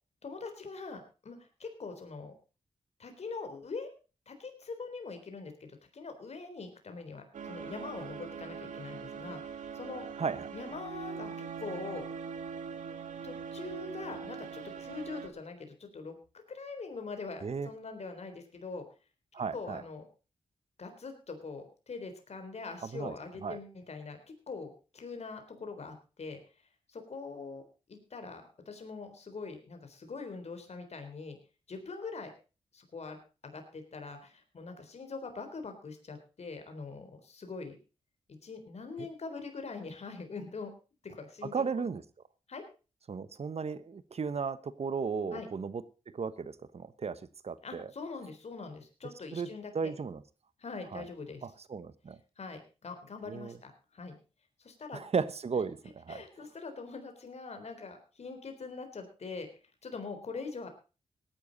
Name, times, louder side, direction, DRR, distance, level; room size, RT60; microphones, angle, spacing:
voice 1, 0.2-2.3 3.0-3.9 4.3-10.1 10.5-12.0 13.2-16.2 16.5-18.8 19.5-20.0 20.8-24.2 24.5-26.4 26.9-27.6 27.9-31.4 31.7-32.3 32.7-33.2 33.4-37.8 38.4-40.7 41.0-41.6 42.5-42.6 45.3-45.5 47.6-49.7 50.6-51.5 52.4-54.2 54.6-55.0 56.1-59.5 59.8-60.7, left 4 dB, 60° left, 6 dB, 3.8 m, -43 dB
sound 1, 7.3-15.3, right 6 dB, 80° right, 1.8 m, -42 dB
voice 2, 10.2-10.5 17.4-17.7 19.3-19.8 22.8-23.1 23.4-23.6 39.0-39.1 41.5-42.0 43.1-45.8 46.1-47.9 49.3-49.5 49.7-50.2 50.9-51.0 51.4-52.2 53.3-53.6 54.9-56.2, right 5 dB, 55° right, 15 dB, 1.2 m, -35 dB
17.5 x 10.5 x 4.1 m, 0.33 s
cardioid pair, 60°, 13 cm